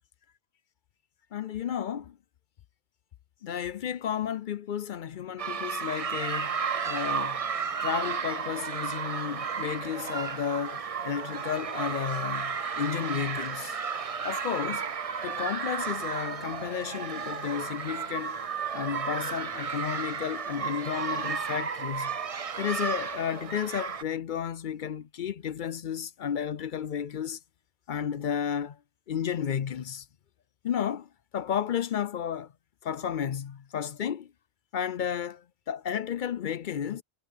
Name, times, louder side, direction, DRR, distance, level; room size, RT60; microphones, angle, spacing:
voice 1, 1.3-2.1 3.4-6.5 6.9-7.4 7.8-13.8 14.2-14.8 15.2-18.4 18.7-22.2 22.6-27.4 27.9-28.8 29.1-30.0 30.6-31.1 31.3-32.5 32.8-34.3 34.7-37.0, left 8 dB, 60° left, 0.6 m, -32 dB
sound 1, 5.4-24.0, right 6 dB, 40° right, 0.7 m, -33 dB
omnidirectional pair, 1.1 m